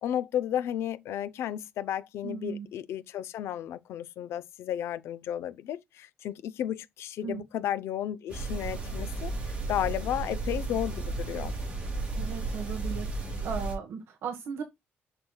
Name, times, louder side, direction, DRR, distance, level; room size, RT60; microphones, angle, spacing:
voice 1, 0.0-11.5, left 11 dB, 80° left, 0.6 m, -33 dB
voice 2, 2.2-2.7 7.2-7.4 12.2-14.6, right 6 dB, 70° right, 1.4 m, -37 dB
sound 1, 8.3-13.8, right 3 dB, 25° right, 4.7 m, -33 dB
7.3 x 6.5 x 2.3 m
cardioid pair, 170°, 4 cm